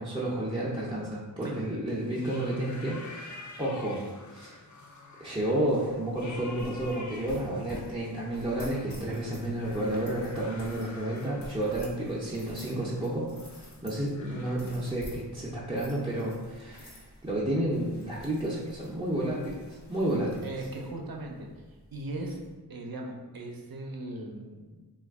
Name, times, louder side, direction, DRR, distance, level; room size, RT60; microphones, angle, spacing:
voice 1, 0.0-4.0 4.3-4.6 5.2-13.3 13.8-20.5, right 1 dB, 15° right, -7 dB, 0.5 m, -31 dB
sound 1, 1.9-14.6, left 3 dB, 50° left, 0.5 m, -49 dB
sound 2, 5.4-22.5, equal, 90° left, 0.8 m, -49 dB
voice 2, 20.4-21.5 21.9-22.4 22.7-24.8, right 2 dB, 65° right, 1 dB, 0.6 m, -38 dB
2.9 x 2.4 x 3.4 m, 1.2 s
wide cardioid pair, 50°, 39 cm